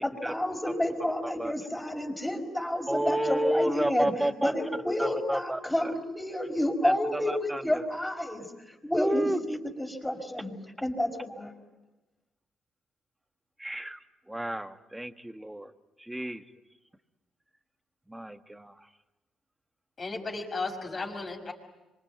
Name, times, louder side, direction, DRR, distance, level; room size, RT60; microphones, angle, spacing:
voice 1, 0.0-4.1 4.4-10.5 10.8-11.5, left 1 dB, 10° left, 4 dB, 4.9 m, -30 dB
voice 2, 2.9-4.5 5.0-5.9 6.8-7.8 9.0-9.4 13.6-15.7 16.0-16.4 18.1-18.9, right 1 dB, 10° right, 9 dB, 1.6 m, -31 dB
voice 3, 20.0-21.5, left 3 dB, 40° left, 2 dB, 6.0 m, -34 dB
26.0 x 24.0 x 9.4 m, 1.1 s
cardioid pair, 90°, 0 cm